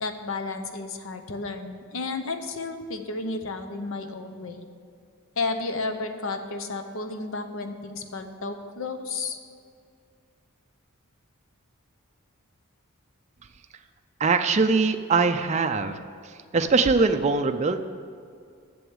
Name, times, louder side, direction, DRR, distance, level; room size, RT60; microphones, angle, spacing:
voice 1, 0.0-4.7 5.4-9.4, left 3 dB, 65° left, 7 dB, 0.8 m, -32 dB
voice 2, 14.2-16.0 16.5-17.9, right 4 dB, 30° right, 7 dB, 0.4 m, -22 dB
8.0 x 7.0 x 7.9 m, 2.3 s
head